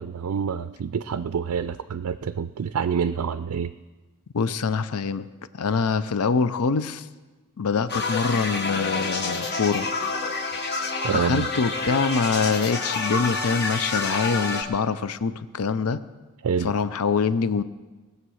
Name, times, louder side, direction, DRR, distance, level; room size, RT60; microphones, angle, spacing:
voice 1, 0.0-3.7 11.0-11.5 16.4-16.7, right 6 dB, 75° right, 11 dB, 0.4 m, -27 dB
voice 2, 4.3-5.3 5.5-7.1 7.6-9.9 11.1-16.0 16.6-17.6, left 5 dB, 75° left, 14 dB, 0.5 m, -24 dB
sound 1, 7.9-14.6, left 3 dB, 50° left, 1.3 m, -28 dB
19.5 x 7.9 x 6.3 m, 1.2 s
head